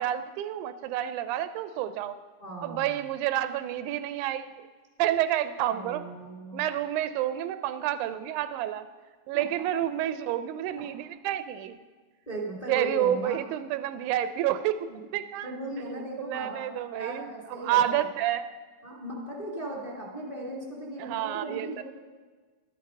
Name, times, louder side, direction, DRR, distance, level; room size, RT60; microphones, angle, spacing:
voice 1, 0.0-2.2 2.6-4.5 5.0-6.0 6.5-8.9 9.3-11.8 12.7-14.9 15.1-15.5 16.3-18.5 21.0-21.8, right 12 dB, 85° right, 11 dB, 2.0 m, -29 dB
voice 2, 2.4-3.0 5.7-6.6 9.3-9.4 12.3-13.4 14.9-15.0 15.4-16.6 16.9-18.1 18.8-21.8, right 1 dB, 15° left, -3 dB, 1.5 m, -37 dB
11.5 x 8.8 x 5.3 m, 1.4 s
omnidirectional pair, 3.5 m